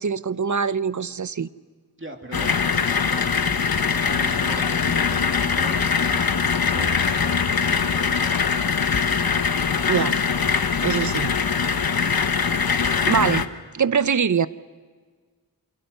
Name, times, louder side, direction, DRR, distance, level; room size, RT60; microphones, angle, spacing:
voice 1, 0.0-1.5 9.9-10.2 10.8-11.4 13.1-13.4 13.7-14.5, right 6 dB, 50° right, 15 dB, 0.7 m, -23 dB
voice 2, 2.0-3.4 3.9-6.2 6.7-8.4, right 2 dB, 35° right, 3 dB, 2.7 m, -40 dB
sound 1, 2.3-13.5, left 6 dB, 70° left, 1.1 m, -22 dB
28.0 x 24.5 x 6.8 m, 1.5 s
wide cardioid pair, 65°, 37 cm